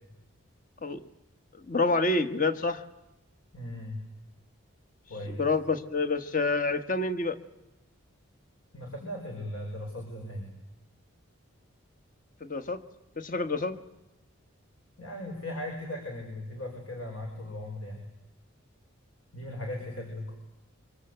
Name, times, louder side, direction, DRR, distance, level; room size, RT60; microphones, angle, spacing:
voice 1, 1.7-2.8 5.4-7.4 12.4-12.8 13.2-13.8, left 3 dB, 40° left, 10 dB, 1.4 m, -27 dB
voice 2, 3.5-4.0 5.1-5.4 8.7-10.5 15.0-18.0 19.3-20.3, left 1 dB, 70° left, 2 dB, 5.4 m, -38 dB
25.0 x 25.0 x 8.1 m, 0.93 s
head